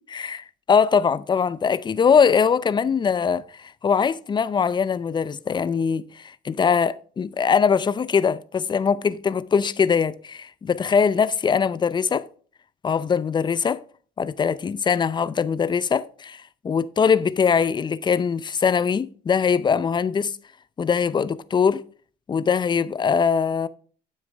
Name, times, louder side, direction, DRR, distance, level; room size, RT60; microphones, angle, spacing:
voice 1, 0.1-12.2 12.8-13.8 14.2-20.3 20.8-21.8 22.3-23.7, left 6 dB, 25° left, 0.6 m, -22 dB
9.7 x 7.4 x 3.4 m
cardioid pair, 110°, 17 cm